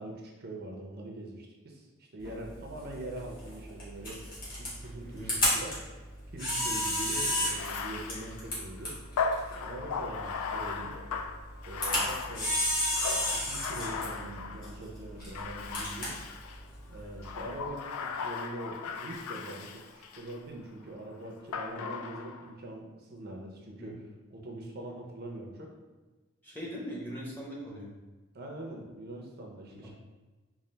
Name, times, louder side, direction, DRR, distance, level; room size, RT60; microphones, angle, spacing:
voice 1, 0.0-4.2 4.6-5.8 6.3-9.0 9.4-10.9 11.7-16.1 16.9-25.7 28.3-29.9, right 1 dB, 45° right, 0 dB, 0.5 m, -43 dB
Camera, 2.2-17.7, left 1 dB, 40° left, 1.4 m, -34 dB
Bathtub (filling or washing), 7.4-14.8 15.3-16.6 17.2-20.4 21.5-22.5, left 5 dB, 80° left, 0.3 m, -37 dB
voice 2, 26.4-27.9 29.8-29.9, equal, 10° left, -5 dB, 0.7 m, -40 dB
3.9 x 2.5 x 3.2 m, 1.3 s
head